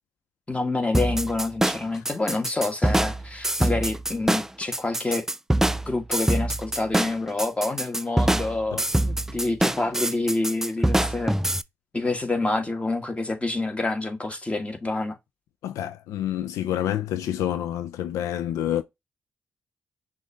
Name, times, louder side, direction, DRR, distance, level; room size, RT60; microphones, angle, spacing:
voice 1, 0.5-5.3 5.8-11.4 11.9-15.2, left 2 dB, 25° left, 1.6 m, -27 dB
sound 1, 0.9-11.6, right 1 dB, 10° right, 0.4 m, -24 dB
voice 2, 15.6-18.8, left 11 dB, 85° left, 0.3 m, -28 dB
6.1 x 2.7 x 3.2 m
supercardioid pair, 45°, 5 cm